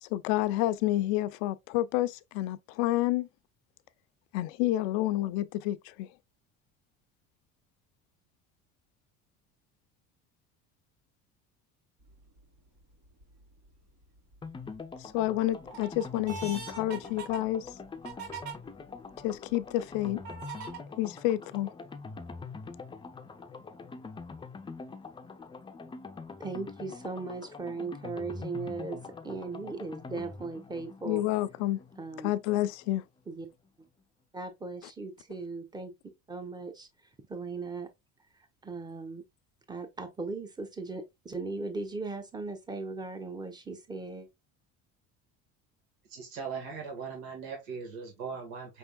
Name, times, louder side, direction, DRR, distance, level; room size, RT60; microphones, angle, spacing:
voice 1, 0.0-3.3 4.3-6.1 15.0-17.7 19.2-20.2 21.0-21.7 31.0-31.8 32.2-33.0, left 15 dB, 85° left, 0.5 m, -29 dB
sound 1, 12.1-12.4 13.0-13.7 14.2-14.8 15.3-18.5 19.2-19.3 20.2-20.8, right 6 dB, 70° right, 2.4 m, -42 dB
sound 2, 14.4-33.0 33.3-33.4 33.7-33.8, left 4 dB, 15° left, 0.5 m, -44 dB
voice 2, 26.4-31.2 32.0-32.3 33.3-33.5 34.3-35.9 36.3-36.9 37.3-37.9 38.6-39.2 39.7-44.3, right 3 dB, 15° right, 1.0 m, -38 dB
voice 3, 46.1-48.8, right 5 dB, 90° right, 1.6 m, -39 dB
5.3 x 3.5 x 2.3 m
cardioid pair, 110°, 30 cm